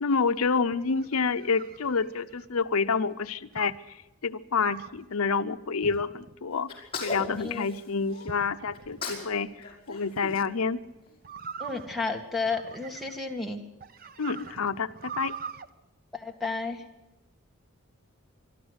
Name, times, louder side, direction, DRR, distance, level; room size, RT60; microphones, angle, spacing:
voice 1, 0.0-4.0 4.2-6.7 7.0-9.5 9.9-10.8 14.2-15.3, left 5 dB, 80° left, 10 dB, 0.7 m, -28 dB
sound 1, 0.7-2.5 3.6-3.9 4.6-5.0 5.8-6.3 6.9-7.6 8.3-9.0 10.2-10.5 11.2-13.3 13.8-15.7, right 6 dB, 40° right, 0.7 m, -42 dB
Sneeze, 6.7-8.3 8.7-9.3 9.6-11.1, left 3 dB, 25° left, 5.0 m, -38 dB
voice 2, 7.4-7.7 11.6-13.6 16.1-16.8, left 3 dB, ahead, -1 dB, 2.0 m, -32 dB
25.0 x 12.5 x 8.1 m, 1.0 s
head